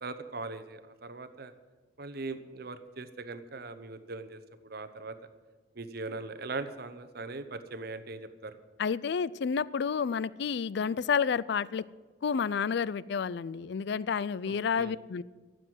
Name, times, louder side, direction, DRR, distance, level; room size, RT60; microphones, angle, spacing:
voice 1, 0.0-1.5 2.0-5.2 5.7-8.5 14.5-15.0, right 3 dB, 55° right, 11 dB, 1.0 m, -40 dB
voice 2, 8.8-11.8 12.2-15.2, left 6 dB, 60° left, 20 dB, 0.4 m, -30 dB
14.5 x 7.7 x 7.8 m, 1.4 s
head